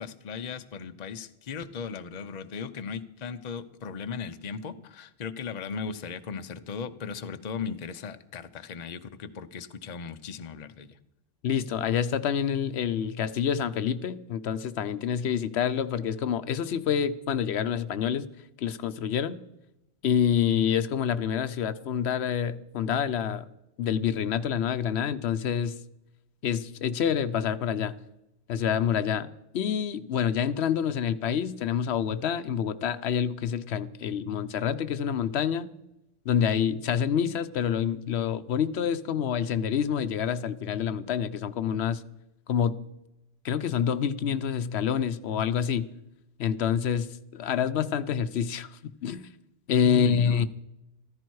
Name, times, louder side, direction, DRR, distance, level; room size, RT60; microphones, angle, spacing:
voice 1, 0.0-11.0 49.8-50.5, left 6 dB, 45° left, 9 dB, 0.7 m, -37 dB
voice 2, 11.4-18.3 18.6-19.4 20.0-23.5 23.8-25.7 26.4-27.9 28.5-29.3 29.5-35.7 36.3-42.0 42.5-42.8 43.4-45.9 46.4-47.1 47.3-49.2 49.7-50.5, left 8 dB, 80° left, 13 dB, 0.9 m, -27 dB
15.0 x 14.0 x 4.7 m, 0.90 s
omnidirectional pair, 1.1 m